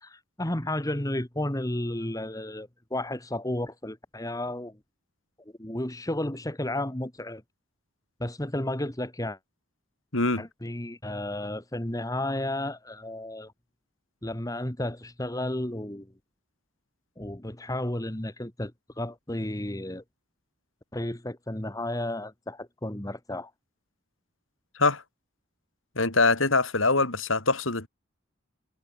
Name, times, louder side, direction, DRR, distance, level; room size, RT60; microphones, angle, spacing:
voice 1, 0.0-4.8 5.6-7.4 8.2-9.4 10.4-13.5 14.2-16.1 17.2-20.0 20.9-23.5, left 1 dB, 15° left, 1.8 m, -32 dB
voice 2, 10.1-10.4 24.7-25.0 25.9-27.9, left 3 dB, 80° left, 4.9 m, -23 dB
head